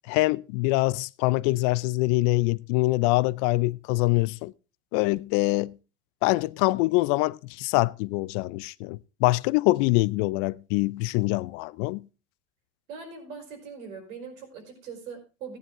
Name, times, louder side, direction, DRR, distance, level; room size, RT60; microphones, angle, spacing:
voice 1, 0.1-4.5 4.9-5.8 6.2-12.1, left 21 dB, 65° left, 0.6 m, -24 dB
voice 2, 12.9-15.6, right 5 dB, 85° right, 4.7 m, -41 dB
15.5 x 9.5 x 3.6 m
supercardioid pair, 115°, 40 cm